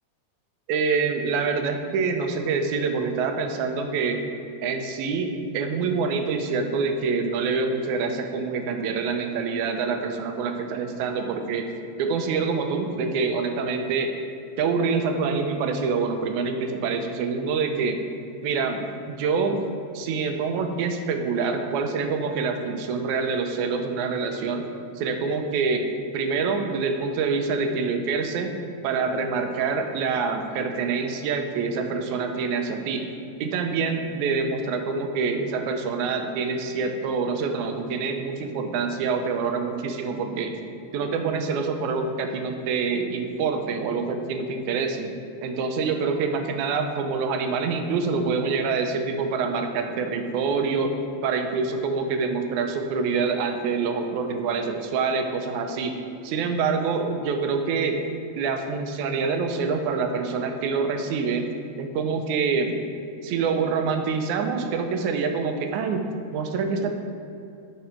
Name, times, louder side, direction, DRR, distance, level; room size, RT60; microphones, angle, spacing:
voice 1, 0.7-4.2 4.6-11.7 12.0-14.1 14.6-18.0 18.4-19.7 19.9-24.7 25.0-25.8 26.1-28.5 28.8-33.1 33.4-40.6 40.9-45.1 45.4-50.9 51.2-56.0 56.2-58.0 58.4-61.5 61.8-62.8 63.2-66.0 66.3-67.0, right 4 dB, 90° right, 5 dB, 2.1 m, -26 dB
10.5 x 5.4 x 4.4 m, 2.7 s
omnidirectional pair, 3.3 m